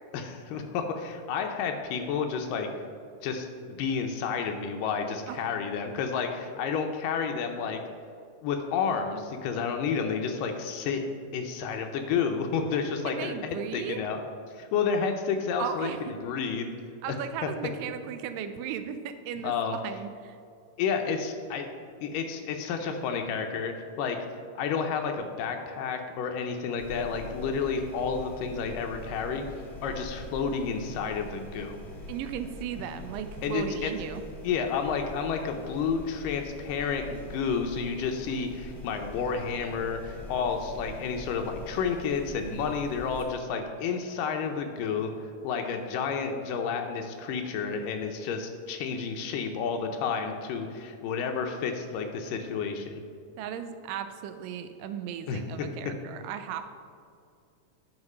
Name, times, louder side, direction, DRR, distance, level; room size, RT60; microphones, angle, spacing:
voice 1, 0.1-2.7 3.2-7.8 8.4-11.1 11.3-14.2 14.5-16.7 17.1-17.2 19.4-19.8 20.8-21.7 22.0-24.2 24.6-29.5 29.8-31.8 33.4-33.9 34.4-45.1 45.4-53.0 55.3-55.7, left 6 dB, 85° left, 4 dB, 2.3 m, -30 dB
voice 2, 13.0-14.0 15.6-16.1 17.0-20.4 32.1-34.2 53.4-56.7, right 8 dB, 85° right, 9 dB, 2.3 m, -36 dB
sound 1, 26.8-43.2, left 1 dB, ahead, 1.5 m, -43 dB
9.7 x 5.7 x 5.5 m, 2.4 s
omnidirectional pair, 3.8 m